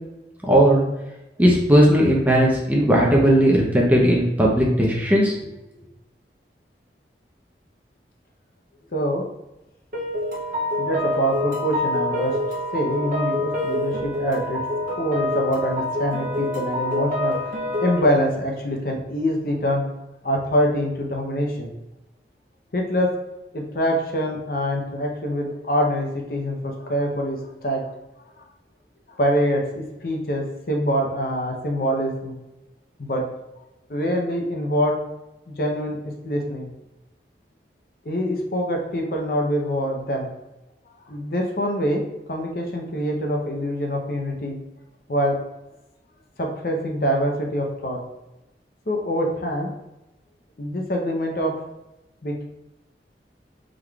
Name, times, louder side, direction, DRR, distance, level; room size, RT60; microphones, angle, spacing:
voice 1, 0.5-0.8 1.4-5.3, equal, 10° right, -3 dB, 0.7 m, -17 dB
voice 2, 8.9-9.2 10.8-12.3 12.7-14.6 14.9-17.5 17.8-19.8 20.2-21.7 22.7-23.1 23.5-27.9 28.4-28.5 29.2-32.4 33.0-33.2 33.9-35.0 35.5-36.0 36.2-36.7 38.0-40.3 41.1-42.0 42.3-44.6 45.1-45.4 46.4-48.0 48.9-49.7 50.6-51.5 52.2-52.4, equal, 55° left, 1 dB, 0.7 m, -24 dB
sound 1, 9.9-18.0, left 1 dB, 45° right, 0.6 m, -26 dB
4.8 x 3.8 x 2.3 m, 0.95 s
head